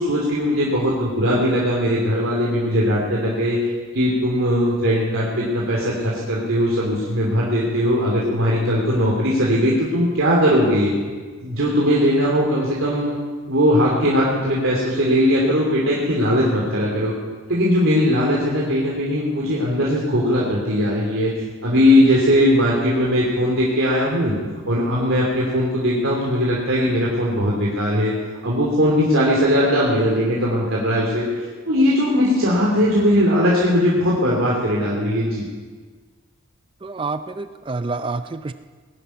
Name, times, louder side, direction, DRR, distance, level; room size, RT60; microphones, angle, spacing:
voice 1, 0.0-3.6 3.9-10.9 11.4-13.1 13.5-17.1 17.5-21.3 21.6-24.3 24.7-28.1 28.4-35.4, equal, 75° right, -5 dB, 2.9 m, -19 dB
voice 2, 36.8-38.5, right 3 dB, 25° right, 10 dB, 0.4 m, -28 dB
20.0 x 11.0 x 5.8 m, 1.5 s
head